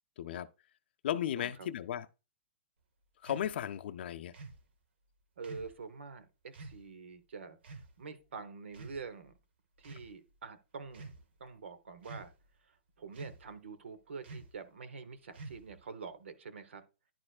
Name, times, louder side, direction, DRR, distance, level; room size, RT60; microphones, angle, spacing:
voice 1, 0.2-0.5 1.0-2.1 3.2-4.3, left 10 dB, 60° left, 0.5 m, -35 dB
voice 2, 1.4-1.7 5.4-9.3 9.8-11.1 11.4-12.3 12.6-16.8, right 5 dB, 90° right, 1.0 m, -46 dB
sound 1, 3.2-3.5 4.3-4.6 5.4-5.8 6.5-6.8 7.6-7.9 8.7-9.3 9.8-10.1 10.8-11.2 12.0-12.5 13.1-13.5 14.2-14.6 15.3-15.8, right 3 dB, 70° right, 1.2 m, -48 dB
10.5 x 4.3 x 2.4 m
hypercardioid pair, 155°, 6 cm